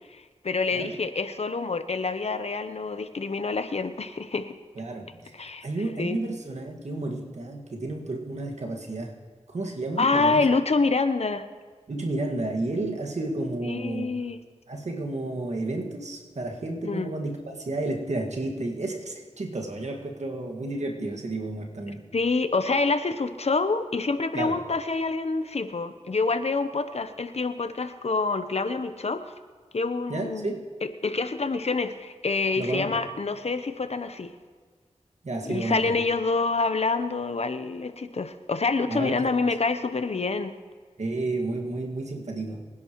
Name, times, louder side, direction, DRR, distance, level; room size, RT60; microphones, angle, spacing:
voice 1, 0.1-4.6 5.3-5.7 6.0-6.2 10.0-11.4 13.6-14.4 16.8-17.1 22.1-29.2 29.7-30.5 31.0-34.3 35.4-40.5, left 3 dB, 65° left, 10 dB, 0.8 m, -27 dB
voice 2, 4.8-5.4 5.6-9.1 9.5-10.5 11.9-14.2 14.7-22.1 24.3-24.6 30.1-30.7 32.6-33.0 35.2-36.0 38.9-39.3 41.0-42.6, right 2 dB, 75° right, 1 dB, 1.9 m, -31 dB
24.5 x 10.5 x 3.1 m, 1.5 s
cardioid pair, 45°, 12 cm